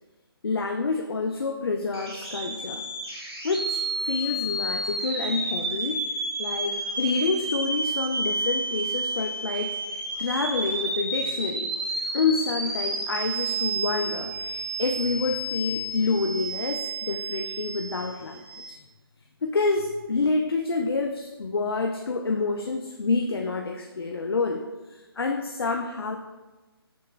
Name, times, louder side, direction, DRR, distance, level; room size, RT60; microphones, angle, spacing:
voice 1, 0.4-2.8 3.4-6.0 6.4-11.7 12.1-18.8 19.4-24.6 24.9-26.2, left 4 dB, 70° left, 3 dB, 0.4 m, -28 dB
sound 1, 1.9-18.7, right 2 dB, 85° right, 1.4 m, -31 dB
6.9 x 3.0 x 2.4 m, 1.2 s
figure-of-eight pair, 150°, 13 cm